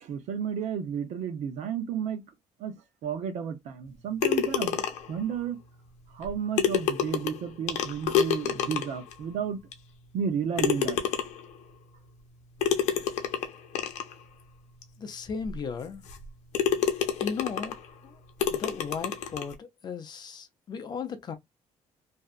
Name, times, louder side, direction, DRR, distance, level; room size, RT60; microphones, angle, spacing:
voice 1, 0.0-2.2 2.6-2.7 3.0-4.8 5.1-5.6 6.1-9.6 10.1-11.0, right 7 dB, 70° right, 0.8 m, -32 dB
sound 1, 4.2-5.2 6.2-6.3 6.6-9.1 9.7-9.8 10.6-11.5 12.6-14.1 14.8-14.9 15.4-15.5 16.1-16.2 16.5-17.8 18.4-19.5, left 8 dB, 70° left, 0.6 m, -28 dB
voice 2, 15.0-16.0 17.2-17.7 18.0-18.2 18.5-21.3, left 6 dB, 35° left, 0.5 m, -36 dB
2.6 x 2.2 x 2.3 m
cardioid pair, 155°, 12 cm